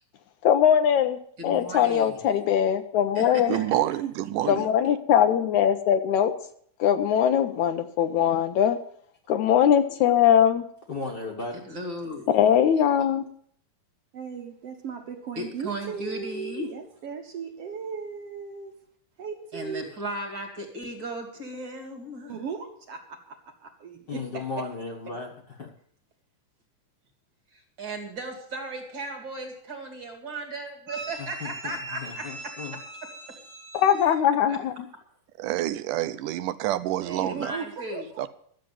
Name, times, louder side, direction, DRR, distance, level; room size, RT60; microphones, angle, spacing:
voice 1, 0.4-3.6 4.5-6.3 6.8-8.8 9.3-10.6 12.3-13.3 33.7-34.7, left 9 dB, 75° left, 2.1 m, -21 dB
voice 2, 1.4-2.2 3.1-3.8 11.5-12.3 15.3-16.7 19.5-22.4 27.5-32.2 34.5-34.6 37.0-38.0, right 1 dB, 40° right, 3.0 m, -36 dB
voice 3, 3.5-4.7 35.4-37.5 38.2-38.3, right 13 dB, 85° right, 2.2 m, -28 dB
voice 4, 9.3-9.7 10.9-11.6 24.1-25.3 25.6-25.7 31.2-32.8, left 4 dB, 40° left, 1.8 m, -36 dB
voice 5, 14.1-18.7 19.2-20.0 22.3-24.4 30.9-34.1 37.2-38.2, right 5 dB, 55° right, 2.2 m, -38 dB
13.0 x 7.6 x 8.7 m
omnidirectional pair, 3.7 m